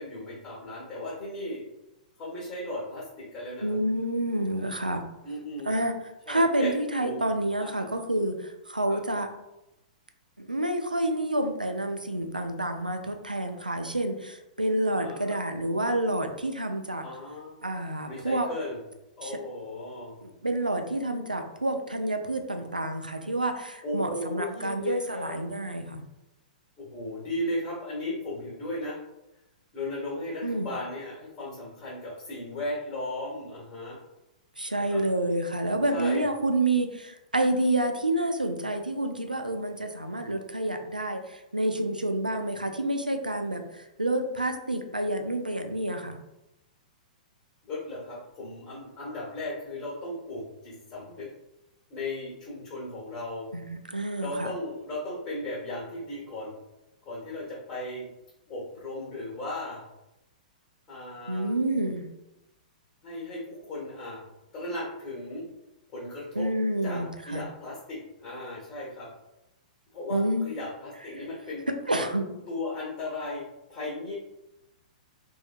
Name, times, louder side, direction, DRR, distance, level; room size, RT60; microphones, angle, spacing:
voice 1, 0.0-1.6 2.2-3.8 5.2-5.9 6.3-6.7 7.0-7.2 7.6-7.8 8.9-9.0 15.0-15.4 17.0-17.6 18.0-18.8 19.2-20.2 23.8-25.3 26.8-29.0 29.7-34.0 34.7-35.0 35.9-36.3 47.6-51.3 51.9-53.5 54.2-56.5 57.0-58.1 58.5-59.8 60.9-61.5 63.0-64.2 64.5-65.5 65.9-66.5 66.8-69.1 69.9-71.7 72.5-74.1, left 1 dB, 30° left, -7 dB, 1.0 m, -36 dB
voice 2, 3.6-5.0 5.7-5.9 6.3-9.3 10.4-17.1 17.6-18.5 19.2-19.4 20.2-26.0 30.4-30.7 34.6-46.2 53.5-54.5 61.3-62.0 66.4-67.5 70.1-70.5 71.2-71.3 71.9-72.3, right 1 dB, 85° right, 6 dB, 0.4 m, -28 dB
3.2 x 2.6 x 2.4 m, 0.92 s
figure-of-eight pair, 110°, 4 cm